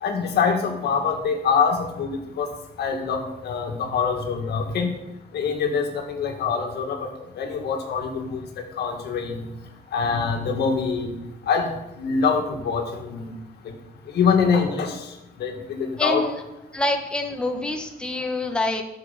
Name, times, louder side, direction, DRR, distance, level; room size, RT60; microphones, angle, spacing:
voice 1, 0.0-2.5 2.8-5.0 5.3-7.1 7.4-8.4 8.8-9.5 9.9-11.1 11.5-11.7 12.0-13.3 13.6-13.7 14.1-15.1 15.4-16.3, left 5 dB, 85° left, 3 dB, 1.8 m, -24 dB
voice 2, 16.0-16.4 16.7-18.8, left 2 dB, 5° left, 3 dB, 1.1 m, -26 dB
11.0 x 6.6 x 5.7 m, 0.92 s
cardioid pair, 140°, 17 cm